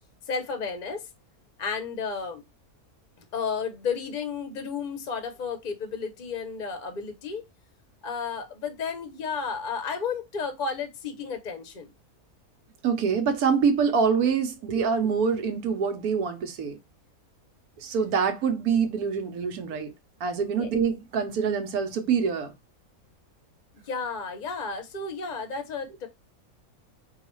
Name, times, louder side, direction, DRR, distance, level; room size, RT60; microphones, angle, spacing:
voice 1, 0.3-1.0 1.6-2.4 3.3-7.4 8.0-11.9 20.6-20.7 23.9-26.1, left 5 dB, 45° left, 0.6 m, -32 dB
voice 2, 12.8-16.8 17.8-19.9 20.2-22.5, right 6 dB, 90° right, 1.3 m, -25 dB
4.7 x 2.4 x 3.0 m
omnidirectional pair, 1.5 m